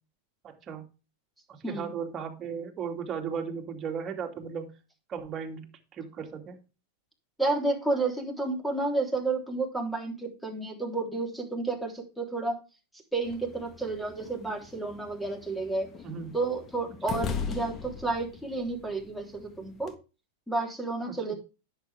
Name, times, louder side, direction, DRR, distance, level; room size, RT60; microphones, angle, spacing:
voice 1, 0.4-0.8 1.5-4.7 5.1-6.6 16.0-16.3 17.1-17.2 21.1-21.3, right 6 dB, 30° right, 2 dB, 2.6 m, -36 dB
voice 2, 7.4-12.6 13.1-15.9 16.3-19.9 20.5-21.3, right 3 dB, ahead, 3 dB, 3.5 m, -31 dB
sound 1, 13.2-19.9, left 6 dB, 30° left, 1.4 m, -40 dB
10.5 x 7.7 x 3.5 m, 0.30 s
hypercardioid pair, 120°, 0 cm